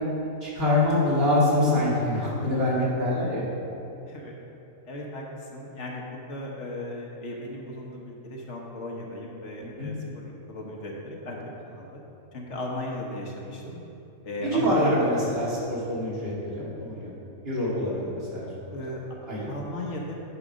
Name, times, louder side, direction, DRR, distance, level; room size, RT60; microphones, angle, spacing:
voice 1, 0.4-3.5 9.8-9.9 14.4-17.1 17.4-18.0 18.3-18.7 19.3-19.5, left 1 dB, 45° right, -8 dB, 2.4 m, -25 dB
voice 2, 4.8-12.0 12.3-13.8 14.2-15.1 18.0-18.1 18.7-19.0 19.5-20.2, left 1 dB, 60° left, -2 dB, 1.3 m, -36 dB
9.9 x 5.0 x 5.1 m, 2.9 s
omnidirectional pair, 1.4 m